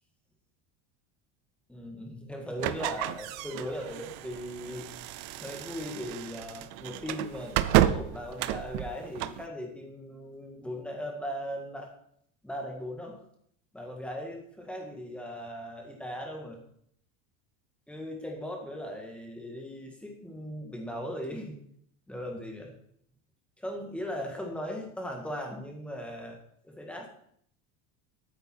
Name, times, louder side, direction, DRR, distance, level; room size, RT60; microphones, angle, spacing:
voice 1, 1.7-4.9 5.4-11.9 12.4-13.2 13.7-16.6 17.9-21.6 22.1-22.7 23.6-26.4 26.6-27.1, equal, 5° left, 2 dB, 1.7 m, -38 dB
sound 1, 2.6-9.4, right 13 dB, 45° right, 0.6 m, -31 dB
12.5 x 9.2 x 4.5 m, 0.68 s
cardioid pair, 175°, 40 cm